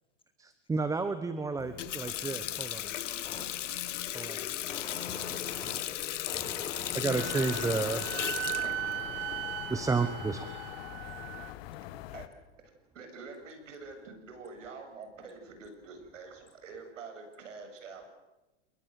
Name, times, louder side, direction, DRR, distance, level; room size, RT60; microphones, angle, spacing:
voice 1, 0.7-2.9 4.1-4.5 6.9-8.1 9.7-10.5, right 4 dB, 10° right, 11 dB, 1.2 m, -31 dB
Water tap faucet, 1.6-10.0, left 12 dB, 75° left, 1.7 m, -36 dB
voice 2, 4.7-5.8 6.3-7.0, left 3 dB, 15° left, 5 dB, 4.4 m, -43 dB
sound 1, 7.1-12.3, left 14 dB, 50° left, 2.0 m, -42 dB
Wind instrument woodwind instrument, 7.1-11.5, right 15 dB, 35° right, 1.1 m, -38 dB
voice 3, 12.9-18.1, right 4 dB, 80° right, 6 dB, 7.6 m, -46 dB
29.0 x 21.5 x 7.8 m, 0.99 s
hypercardioid pair, 130°, 37 cm